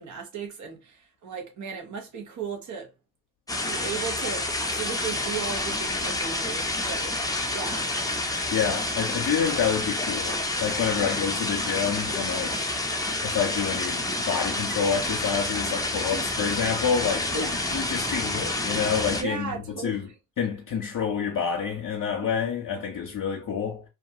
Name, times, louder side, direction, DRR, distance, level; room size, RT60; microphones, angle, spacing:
voice 1, 0.0-2.9 3.6-4.5 4.8-7.2 7.5-7.9 11.0-11.1 16.1-16.3 17.3-17.6 19.2-20.0, right 6 dB, 50° right, 0.8 m, -36 dB
sound 1, 3.5-19.2, left 2 dB, 10° left, 0.6 m, -29 dB
voice 2, 8.5-12.6 13.2-20.1 20.4-23.8, left 7 dB, 60° left, 0.7 m, -28 dB
2.4 x 2.3 x 2.8 m
cardioid pair, 55°, 36 cm